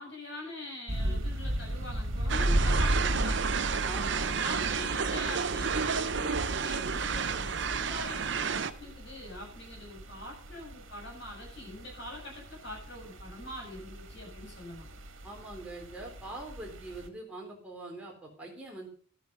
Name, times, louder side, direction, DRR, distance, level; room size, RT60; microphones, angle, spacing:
voice 1, 0.0-3.6 4.1-14.9, left 1 dB, 60° left, 0 dB, 7.5 m, -44 dB
sound 1, 0.9-17.1, right 1 dB, 85° right, 1.8 m, -35 dB
sound 2, 2.3-8.7, right 6 dB, 65° right, 0.7 m, -31 dB
voice 2, 3.9-4.4 15.2-18.9, right 2 dB, 5° right, -2 dB, 3.7 m, -43 dB
12.0 x 9.4 x 5.5 m, 0.43 s
head